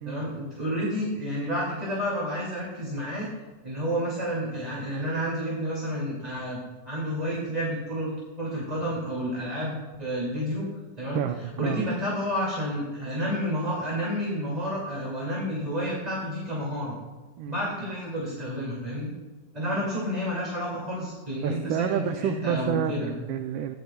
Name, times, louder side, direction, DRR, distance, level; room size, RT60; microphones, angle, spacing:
voice 1, 0.1-3.3 3.6-10.7 11.0-11.2 11.6-17.0 17.5-19.1 19.5-23.1, equal, 20° right, -5 dB, 2.2 m, -30 dB
voice 2, 11.1-11.9 17.4-17.6 19.6-19.9 21.4-23.8, right 9 dB, 90° right, 6 dB, 1.4 m, -29 dB
16.0 x 10.0 x 2.3 m, 1.2 s
omnidirectional pair, 2.1 m